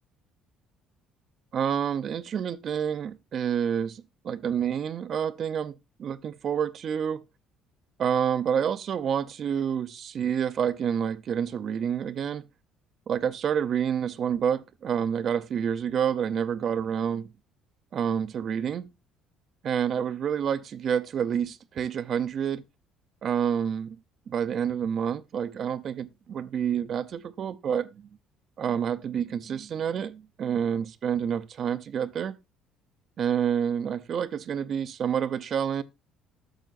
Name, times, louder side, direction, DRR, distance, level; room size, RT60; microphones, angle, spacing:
voice 1, 1.5-7.2 8.0-12.4 13.1-17.3 17.9-18.9 19.6-22.6 23.2-24.0 24.3-28.1 28.6-32.4 33.2-35.8, right 8 dB, 35° right, 0.5 m, -28 dB
14.0 x 6.7 x 2.5 m
cardioid pair, 170°, 0 cm